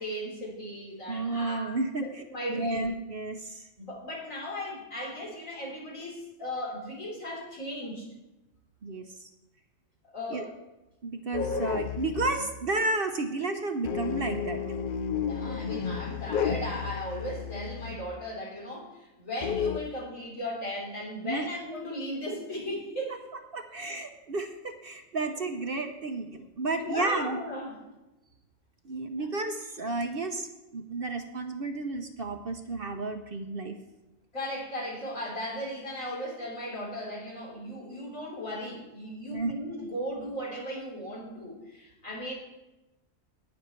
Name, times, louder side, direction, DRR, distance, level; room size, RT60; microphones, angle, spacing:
voice 1, 0.0-1.7 2.0-2.8 3.8-8.1 10.1-10.5 15.2-23.2 26.8-27.7 34.3-42.3, equal, 70° left, -3 dB, 4.0 m, -37 dB
voice 2, 1.1-2.2 2.5-3.7 8.8-9.3 10.3-10.4 11.0-14.6 21.2-21.5 23.5-27.4 28.8-33.8 39.3-39.5, right 3 dB, 50° right, 6 dB, 0.9 m, -32 dB
sound 1, 11.3-12.6 13.8-18.1 19.4-19.8, left 7 dB, 50° left, 0.6 m, -32 dB
18.5 x 6.4 x 4.4 m, 1.0 s
omnidirectional pair, 1.4 m